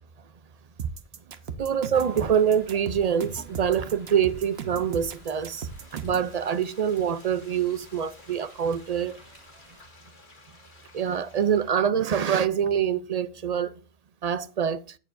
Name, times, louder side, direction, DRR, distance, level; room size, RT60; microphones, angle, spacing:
sound 1, 0.8-6.3, right 6 dB, 75° right, 1.1 m, -37 dB
voice 1, 1.6-9.2 10.9-13.7 14.2-15.0, right 8 dB, 50° right, 0.5 m, -25 dB
Rain, 1.9-9.9, right 1 dB, 30° right, 4.5 m, -55 dB
Frying (food), 3.8-11.7, left 2 dB, 50° left, 2.0 m, -55 dB
16.0 x 6.7 x 2.6 m
omnidirectional pair, 1.1 m